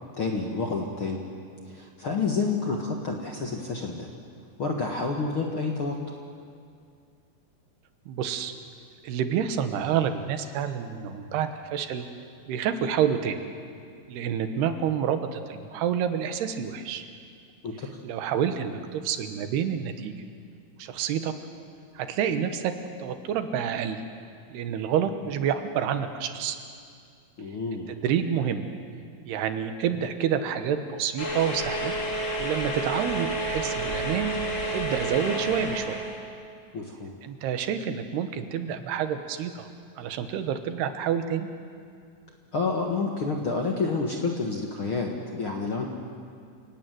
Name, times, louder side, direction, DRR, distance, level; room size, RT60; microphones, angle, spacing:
voice 1, 0.2-1.2 1.6-4.1 4.6-6.0 17.6-17.9 27.4-27.9 36.7-37.1 42.5-45.9, left 4 dB, 45° left, 1 dB, 1.8 m, -29 dB
voice 2, 8.1-8.5 9.0-12.1 12.5-13.4 14.1-17.0 18.0-20.1 20.8-21.3 22.0-24.0 24.5-26.6 27.9-28.7 29.3-31.9 32.4-34.3 34.7-36.1 37.2-39.7 40.0-41.5, right 8 dB, 80° right, 8 dB, 3.3 m, -28 dB
sound 1, 31.2-36.2, right 1 dB, 30° left, 3.9 m, -30 dB
28.0 x 18.0 x 9.3 m, 2.2 s
omnidirectional pair, 4.7 m